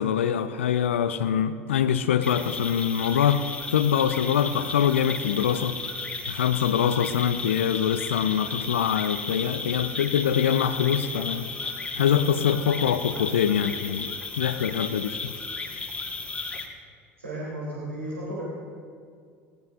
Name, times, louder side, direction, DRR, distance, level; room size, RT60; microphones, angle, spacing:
voice 1, 0.0-3.4 3.7-5.8 6.3-11.5 11.9-15.3, left 9 dB, 70° left, 12 dB, 0.6 m, -24 dB
sound 1, 2.2-16.7, left 3 dB, 15° left, 2.0 m, -34 dB
voice 2, 17.2-18.4, right 1 dB, 80° right, -8 dB, 3.7 m, -34 dB
21.0 x 19.0 x 2.7 m, 2.2 s
figure-of-eight pair, 70°, 7 cm